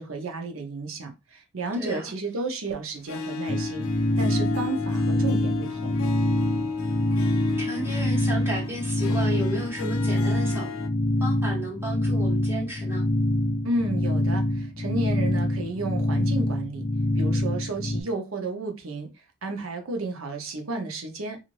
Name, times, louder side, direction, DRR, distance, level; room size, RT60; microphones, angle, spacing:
voice 1, 0.0-3.8 4.2-5.9 13.6-16.9 17.2-19.1 19.4-21.4, right 2 dB, 80° right, 0.8 m, -32 dB
Harp, 3.0-10.9, left 5 dB, 90° left, 0.5 m, -34 dB
sound 1, 3.5-18.0, left 1 dB, 30° left, 0.4 m, -25 dB
voice 2, 7.6-10.7 11.2-13.1, right 1 dB, 10° right, 1.0 m, -33 dB
3.0 x 2.6 x 2.5 m
head